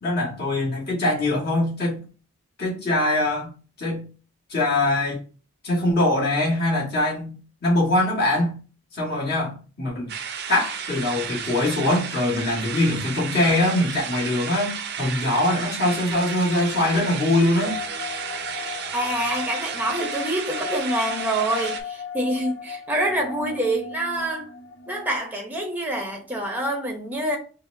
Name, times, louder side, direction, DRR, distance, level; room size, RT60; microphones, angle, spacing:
voice 1, 0.0-2.0 2.6-4.0 4.5-5.2 5.6-7.3 7.6-8.6 8.9-10.1 10.5-17.8, left 1 dB, 45° left, 1.4 m, -23 dB
sound 1, 10.1-21.8, right 7 dB, 50° right, 0.5 m, -33 dB
sound 2, 16.8-25.2, left 6 dB, 65° left, 0.7 m, -36 dB
voice 2, 18.9-24.5 24.9-27.4, right 1 dB, 10° right, 0.6 m, -26 dB
5.4 x 2.0 x 2.6 m
head